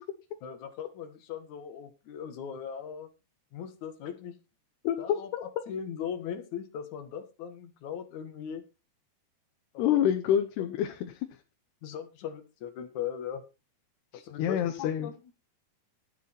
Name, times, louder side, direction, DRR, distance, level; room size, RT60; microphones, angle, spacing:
voice 1, 0.4-3.1 3.5-4.4 5.0-8.6 9.7-10.0 11.8-13.4 14.1-15.1, left 8 dB, 60° left, 8 dB, 2.5 m, -39 dB
voice 2, 4.8-5.4 9.8-11.3 14.1-15.1, left 10 dB, 85° left, 6 dB, 3.1 m, -28 dB
12.5 x 9.4 x 4.3 m, 0.28 s
omnidirectional pair, 4.6 m